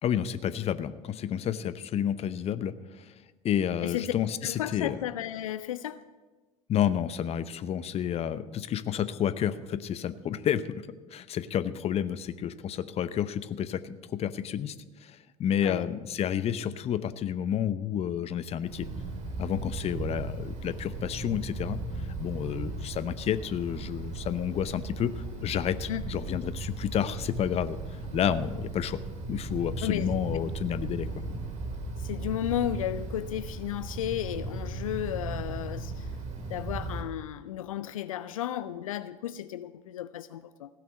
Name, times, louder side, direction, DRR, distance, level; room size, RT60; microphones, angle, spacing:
voice 1, 0.0-3.1 3.4-5.0 6.7-14.7 15.0-18.9 19.4-27.8 28.1-29.0 29.3-31.2, left 9 dB, 35° left, 0.7 m, -30 dB
voice 2, 3.8-4.1 4.4-6.0 15.6-15.9 25.9-26.0 29.8-30.1 32.0-36.1 36.5-40.7, left 12 dB, 80° left, 0.4 m, -33 dB
Wind, 18.6-37.0, right 3 dB, 45° right, 2.8 m, -37 dB
16.0 x 6.0 x 8.1 m
hypercardioid pair, 70°, 17 cm